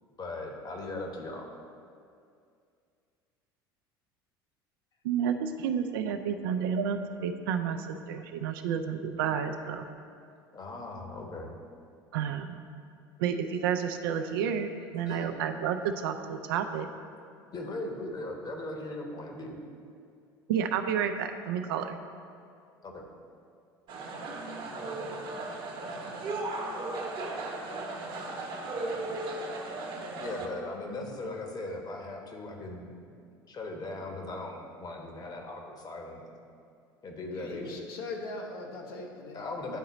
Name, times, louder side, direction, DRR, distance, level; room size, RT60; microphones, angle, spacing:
voice 1, 0.2-1.5 10.3-11.5 15.1-15.4 17.5-19.6 22.8-23.0 26.1-26.2 28.0-28.2 29.5-29.7 30.2-33.0 33.5-36.2 37.0-37.8 39.3-39.8, left 2 dB, 35° left, 2 dB, 1.1 m, -39 dB
voice 2, 5.0-9.9 12.1-12.6 13.2-16.9 20.5-22.0, right 7 dB, 70° right, 8 dB, 0.5 m, -30 dB
sound 1, 23.9-30.5, right 2 dB, 40° right, 1.0 m, -36 dB
voice 3, 37.3-39.8, left 2 dB, 70° left, 0 dB, 1.0 m, -41 dB
10.5 x 3.8 x 4.1 m, 2.3 s
figure-of-eight pair, 70°, 12 cm